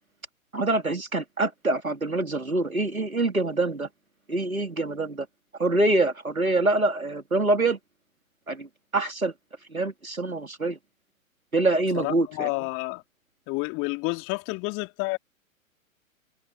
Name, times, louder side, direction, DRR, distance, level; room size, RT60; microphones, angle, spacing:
voice 1, 0.5-3.9 4.3-5.3 5.6-7.8 8.5-8.7 8.9-9.3 9.7-10.8 11.5-12.5, right 2 dB, 85° right, 4.1 m, -25 dB
voice 2, 11.9-13.0 13.5-15.2, left 27 dB, 30° left, 3.2 m, -30 dB
figure-of-eight pair, 110°, 41 cm